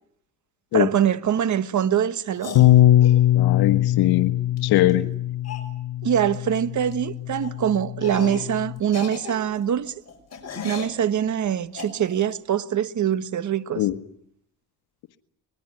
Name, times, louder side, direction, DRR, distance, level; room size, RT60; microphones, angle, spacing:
voice 1, 0.7-2.5 6.0-9.9 10.6-13.9, right 9 dB, 50° right, 1.4 m, -23 dB
sound 1, 2.3-3.2 4.6-4.7 4.9-5.0 5.4-5.7 6.3-6.6 6.8-7.0 7.4-7.6 8.0-8.5 8.8-11.0 11.7-12.3, left 5 dB, 45° left, 6.0 m, -36 dB
Bass guitar, 2.6-8.8, left 13 dB, 65° left, 1.0 m, -21 dB
voice 2, 3.3-4.3 4.6-5.1 13.8-14.0, left 15 dB, 85° left, 1.4 m, -21 dB
24.5 x 21.5 x 9.3 m
cardioid pair, 100°, 37 cm